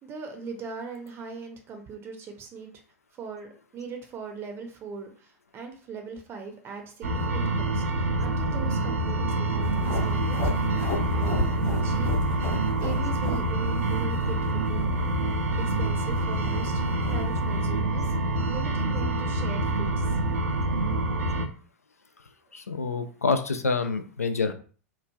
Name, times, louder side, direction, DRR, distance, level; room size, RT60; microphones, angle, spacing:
voice 1, 0.0-2.7 3.1-10.8 11.1-11.5 11.8-12.5 12.8-14.9 15.6-16.8 17.1-18.1 18.5-20.2, right 5 dB, 30° right, 4 dB, 0.6 m, -40 dB
sound 1, 7.0-21.5, right 2 dB, 70° right, 0.5 m, -26 dB
sound 2, 9.6-17.6, left 1 dB, 40° left, 1.2 m, -33 dB
voice 2, 22.5-24.5, left 4 dB, 85° left, 8 dB, 0.4 m, -27 dB
3.1 x 2.3 x 2.2 m, 0.40 s
figure-of-eight pair, 95°, 8 cm